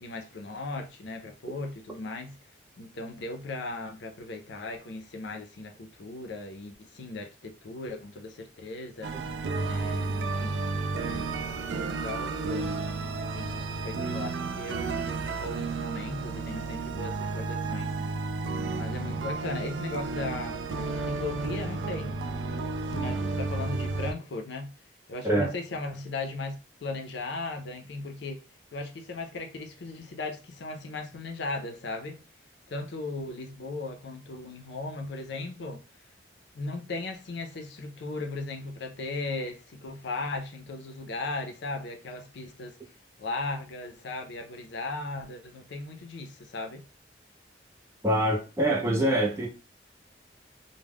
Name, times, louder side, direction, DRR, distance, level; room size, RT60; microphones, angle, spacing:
voice 1, 0.0-2.4 2.8-9.1 9.6-10.6 11.0-12.8 13.2-17.9 18.7-20.6 21.0-22.2 22.9-24.7 25.1-28.4 28.7-32.2 32.7-35.8 36.5-42.7 43.2-46.8, left 2 dB, 70° left, 0.5 m, -37 dB
sound 1, 9.0-24.1, right 3 dB, 80° right, 0.3 m, -32 dB
voice 2, 48.0-49.5, right 1 dB, 15° right, 0.5 m, -25 dB
2.2 x 2.1 x 3.4 m
head